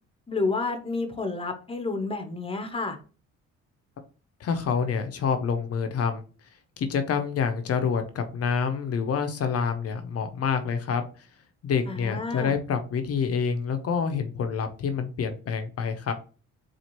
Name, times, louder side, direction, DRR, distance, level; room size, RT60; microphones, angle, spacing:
voice 1, 0.3-3.0 11.9-12.6, left 3 dB, 20° left, 7 dB, 0.7 m, -30 dB
voice 2, 4.4-6.2 6.8-11.1 11.6-16.1, left 6 dB, 50° left, 8 dB, 0.6 m, -27 dB
4.2 x 2.4 x 3.0 m, 0.37 s
cardioid pair, 90°, 30 cm